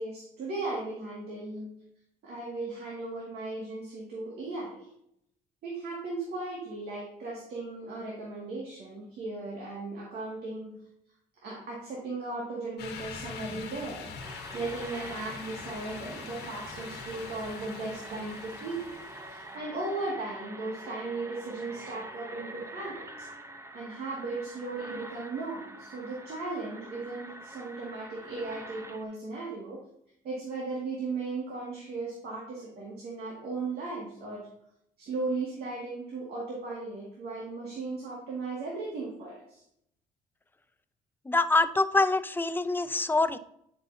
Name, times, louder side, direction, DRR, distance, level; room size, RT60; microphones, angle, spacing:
voice 1, 0.0-1.7 2.2-4.8 5.6-10.8 11.4-14.2 14.5-18.8 19.3-23.3 23.7-29.8 30.2-34.5 35.0-39.6, right 3 dB, 70° right, -4 dB, 2.0 m, -36 dB
sound 1, 12.8-19.6, left 6 dB, 75° left, 1.3 m, -44 dB
sound 2, 14.2-29.0, right 1 dB, 15° right, 0.8 m, -45 dB
voice 2, 41.3-43.4, left 2 dB, 10° left, 13 dB, 0.4 m, -25 dB
9.4 x 5.6 x 2.7 m, 0.73 s
supercardioid pair, 75°, 17 cm